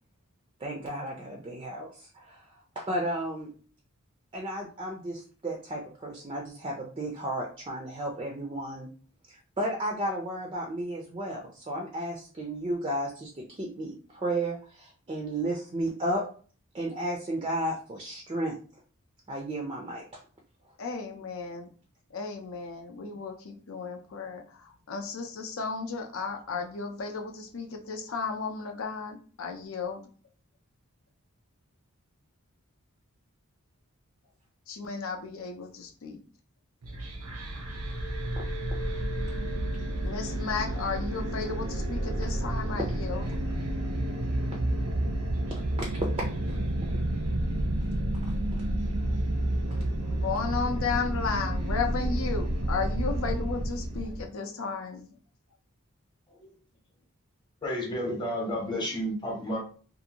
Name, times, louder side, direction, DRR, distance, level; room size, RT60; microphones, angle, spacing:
voice 1, 0.6-2.5 2.8-3.5 4.3-8.9 9.3-16.2 16.7-18.6 19.3-20.0 45.5-45.6 45.9-46.1 46.5-46.6 46.8-47.0, right 1 dB, 25° right, 0 dB, 0.4 m, -33 dB
voice 2, 20.8-21.7 22.1-24.4 24.9-30.0 34.7-36.2 40.0-43.2 50.2-55.1, left 5 dB, 65° left, 4 dB, 0.6 m, -34 dB
sound 1, 36.8-54.3, right 1 dB, 90° right, 0.7 m, -30 dB
voice 3, 57.6-59.6, equal, 20° left, -2 dB, 0.8 m, -31 dB
2.7 x 2.5 x 2.8 m, 0.41 s
head